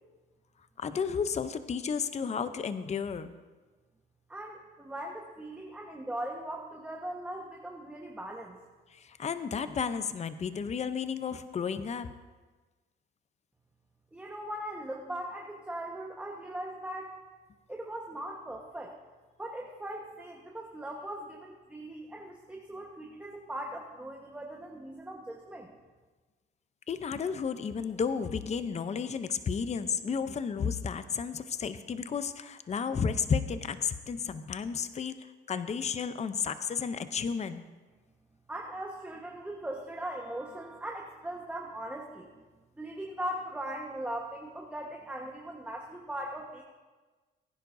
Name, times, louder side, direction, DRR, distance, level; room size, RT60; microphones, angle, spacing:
voice 1, 0.8-3.3 8.9-12.1 26.9-35.1 35.5-37.6, left 6 dB, 35° left, 12 dB, 0.6 m, -32 dB
voice 2, 4.3-8.6 14.1-17.2 17.7-18.9 19.4-25.7 38.5-42.3 42.8-46.6, right 1 dB, 5° right, 0 dB, 1.2 m, -39 dB
20.0 x 10.0 x 2.6 m, 1.3 s
cardioid pair, 90°, 20 cm